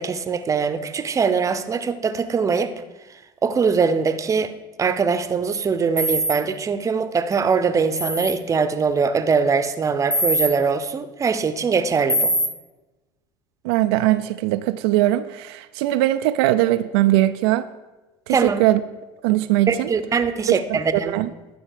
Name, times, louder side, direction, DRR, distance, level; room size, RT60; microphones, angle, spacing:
voice 1, 0.0-2.7 3.4-4.5 4.8-12.3 18.3-18.6 19.7-21.1, right 5 dB, 25° right, 0.8 m, -22 dB
sound 1, 6.0-6.3 8.0-8.3 10.1-10.5 12.1-12.5, equal, 10° left, 1.2 m, -21 dB
voice 2, 13.6-17.7 18.3-18.8 19.2-19.9 20.5-20.6 20.9-21.3, right 15 dB, 80° right, 0.4 m, -20 dB
11.0 x 4.8 x 6.6 m
supercardioid pair, 95°, 13 cm